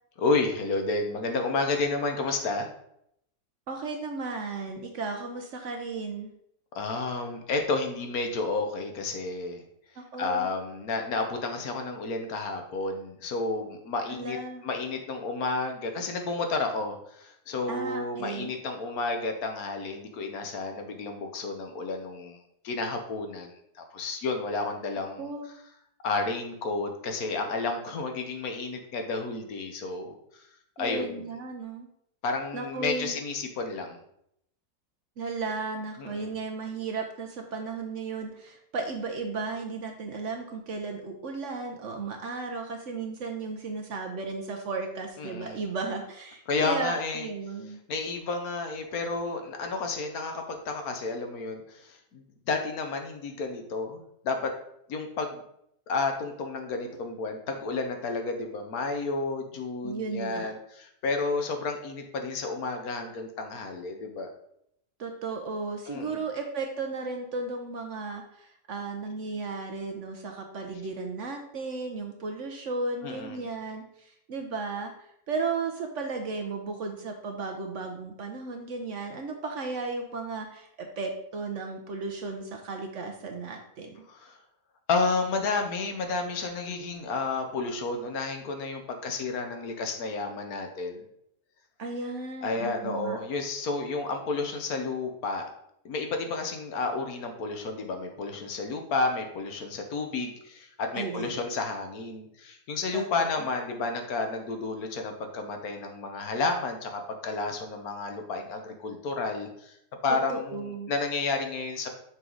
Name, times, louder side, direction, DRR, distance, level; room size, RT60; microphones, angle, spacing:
voice 1, 0.2-2.7 6.7-9.6 10.2-14.4 14.6-22.4 22.6-23.5 23.7-25.3 26.0-30.5 30.8-31.3 32.2-34.0 36.0-36.4 45.2-45.6 46.5-47.3 47.9-54.5 54.9-55.4 55.9-64.3 65.9-66.2 73.0-73.4 84.1-84.4 84.9-91.0 92.4-95.4 95.8-109.7 110.0-111.9, left 3 dB, 65° left, 4 dB, 1.3 m, -31 dB
voice 2, 3.7-6.3 10.0-10.5 14.1-14.6 17.7-18.5 25.2-25.5 30.8-31.9 32.5-33.2 35.2-47.8 59.8-60.5 65.0-84.0 91.8-93.2 100.9-101.4 102.9-103.4 110.1-110.9, right 4 dB, 60° right, 3 dB, 0.9 m, -35 dB
6.2 x 4.6 x 3.8 m, 0.74 s
omnidirectional pair, 1.7 m